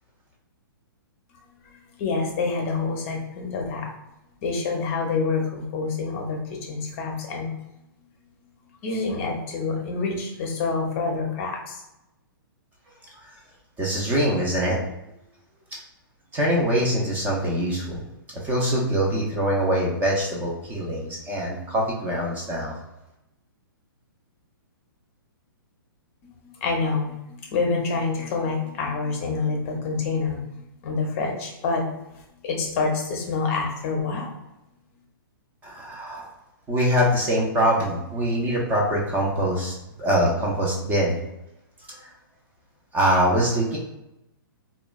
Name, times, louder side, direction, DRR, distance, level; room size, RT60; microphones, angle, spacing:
voice 1, 2.0-3.9 4.4-7.5 8.8-11.8 26.6-30.5 30.8-31.8 32.4-34.4, left 4 dB, 35° left, 2 dB, 0.6 m, -27 dB
voice 2, 13.8-14.8 16.3-18.0 18.4-22.8 35.6-36.3 36.7-39.7 40.0-41.2 41.9-42.0 42.9-43.8, equal, 15° right, -3 dB, 0.5 m, -23 dB
2.9 x 2.1 x 2.3 m, 0.90 s
hypercardioid pair, 145°, 12 cm